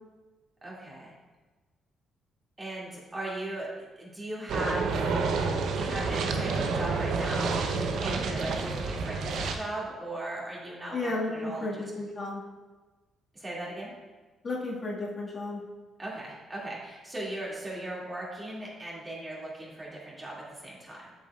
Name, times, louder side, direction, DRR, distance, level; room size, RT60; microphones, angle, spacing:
voice 1, 0.6-1.1 2.6-3.7 4.0-5.1 5.7-11.8 13.3-13.9 16.0-21.1, right 1 dB, 25° right, -5 dB, 2.3 m, -38 dB
sound 1, 4.5-9.5, right 4 dB, 75° right, 0.7 m, -29 dB
voice 2, 10.9-12.4 14.4-15.6, left 2 dB, 40° left, -5 dB, 1.8 m, -33 dB
7.9 x 7.3 x 2.4 m, 1.3 s
cardioid pair, 90°, 0 cm